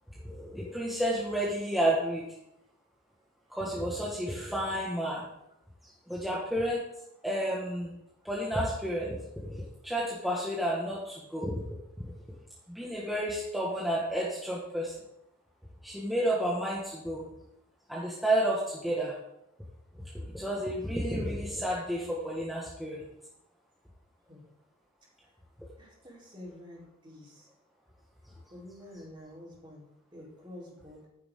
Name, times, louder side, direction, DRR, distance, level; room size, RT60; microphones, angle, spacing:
voice 1, 0.2-2.2 3.5-5.3 5.8-6.8 7.2-7.9 8.2-9.2 9.4-11.5 12.0-12.1 12.7-14.9 15.8-17.3 17.9-19.2 19.9-23.0, right 1 dB, ahead, -6 dB, 1.8 m, -31 dB
voice 2, 25.8-27.5 28.5-31.1, left 1 dB, 25° right, -5 dB, 4.2 m, -48 dB
11.0 x 10.0 x 3.9 m, 0.83 s
head